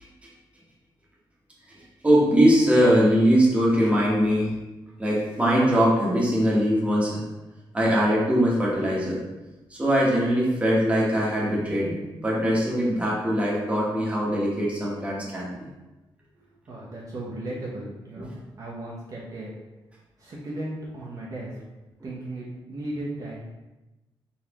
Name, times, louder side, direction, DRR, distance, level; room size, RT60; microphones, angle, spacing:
voice 1, 1.7-4.5 5.0-7.2 7.7-9.2 9.7-15.7, equal, 15° right, -5 dB, 1.2 m, -22 dB
voice 2, 16.3-19.5 20.2-21.5 22.0-23.4, right 1 dB, 45° right, -6 dB, 0.9 m, -36 dB
4.2 x 4.1 x 2.9 m, 1.1 s
wide cardioid pair, 150°, 9 cm